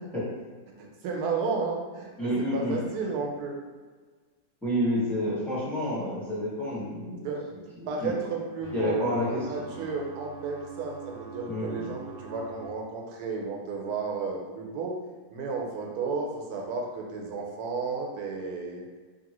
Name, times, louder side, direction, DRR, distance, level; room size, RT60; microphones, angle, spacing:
voice 1, 0.8-2.1 2.5-3.6 7.2-7.4 7.9-14.9 15.3-18.8, right 4 dB, 75° right, 0 dB, 1.1 m, -33 dB
voice 2, 2.2-2.8 4.6-7.3 7.8-8.2 8.7-9.4 9.8-9.9 11.5-11.9, equal, ahead, -9 dB, 0.9 m, -29 dB
sound 1, 8.6-12.6, right 6 dB, 30° right, 0.5 m, -44 dB
2.8 x 2.7 x 2.9 m, 1.4 s
omnidirectional pair, 1.7 m